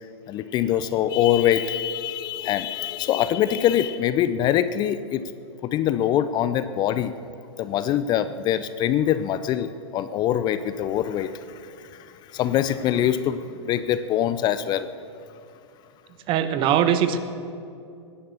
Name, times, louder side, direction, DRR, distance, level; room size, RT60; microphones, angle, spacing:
voice 1, 0.3-5.2 5.6-7.1 7.6-14.9, left 11 dB, 30° left, 13 dB, 0.5 m, -24 dB
voice 2, 16.3-17.2, right 9 dB, 35° right, 11 dB, 1.1 m, -21 dB
17.5 x 10.5 x 7.0 m, 2.5 s
hypercardioid pair, 110°, 15 cm